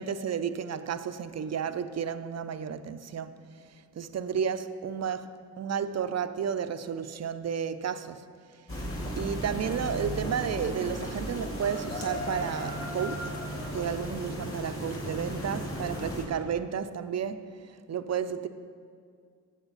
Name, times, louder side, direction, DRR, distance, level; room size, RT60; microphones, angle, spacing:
voice 1, 0.0-3.3 4.0-8.2 9.2-13.3 13.7-17.4 17.9-18.5, right 7 dB, 40° right, 0.6 m, -32 dB
sound 1, 8.7-16.2, equal, 35° left, 3.2 m, -35 dB
15.0 x 7.3 x 4.1 m
hypercardioid pair, 45°, 40 cm